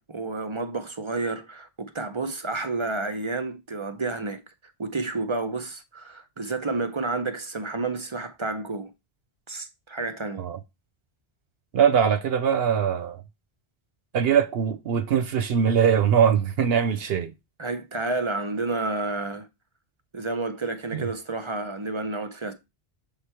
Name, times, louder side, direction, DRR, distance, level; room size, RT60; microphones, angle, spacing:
voice 1, 0.0-4.4 4.8-8.9 9.5-10.4 17.6-19.5 20.1-22.5, right 3 dB, 35° right, 0.5 m, -30 dB
voice 2, 11.7-13.2 14.1-17.3 20.9-21.1, right 7 dB, 70° right, 0.8 m, -22 dB
7.2 x 3.2 x 4.4 m
omnidirectional pair, 1.1 m